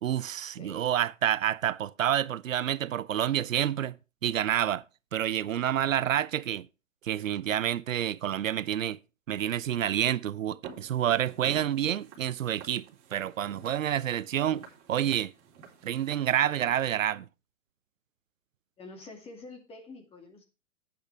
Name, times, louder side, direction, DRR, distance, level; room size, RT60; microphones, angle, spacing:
voice 1, 0.0-4.0 4.2-4.8 5.1-6.7 7.0-9.0 9.3-12.9 13.1-15.3 15.8-17.2, right 10 dB, 75° right, 0.7 m, -28 dB
voice 2, 0.6-0.9 18.8-20.4, left 2 dB, 15° left, 2.3 m, -47 dB
Walk footsteps, 10.6-16.7, right 7 dB, 30° right, 3.9 m, -49 dB
12.0 x 8.7 x 3.5 m
hypercardioid pair, 140°, 39 cm